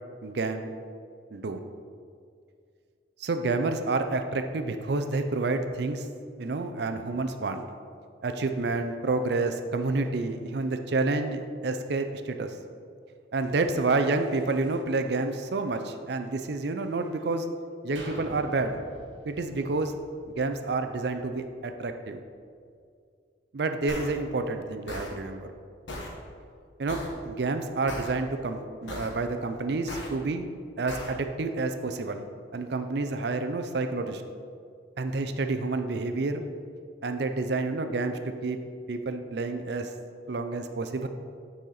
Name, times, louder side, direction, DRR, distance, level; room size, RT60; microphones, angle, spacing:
voice 1, 0.2-0.7 1.3-1.6 3.2-6.1 6.4-7.6 8.2-12.5 13.3-17.5 17.8-18.8 19.2-19.9 20.3-22.2 23.5-25.5 26.8-30.5 30.8-34.2 35.0-36.4 37.0-38.6 38.9-39.9 40.3-41.1, right 3 dB, 55° right, 7 dB, 0.5 m, -29 dB
sound 1, 17.9-21.7 22.2-22.3, right 1 dB, 75° right, 1.5 m, -47 dB
sound 2, 23.9-24.1 24.9-25.1 25.9-26.1 26.9-27.1 27.9-28.1 28.9-29.1 29.9-30.1 30.9-31.1, left 1 dB, 75° left, 1.1 m, -36 dB
9.1 x 4.2 x 3.9 m, 2.2 s
head